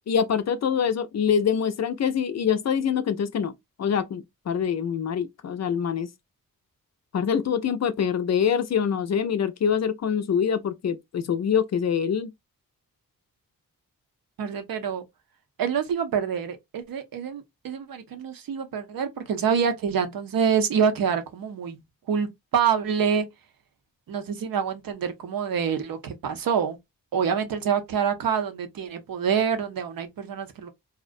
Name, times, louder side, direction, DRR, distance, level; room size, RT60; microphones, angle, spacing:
voice 1, 0.0-3.5 3.8-6.1 7.1-12.3, left 7 dB, 50° left, 0.4 m, -25 dB
voice 2, 14.4-15.1 15.6-21.8 22.1-23.3 24.1-26.8 27.1-30.7, right 7 dB, 75° right, 0.6 m, -26 dB
2.4 x 2.1 x 2.4 m
cardioid pair, 55°, 35 cm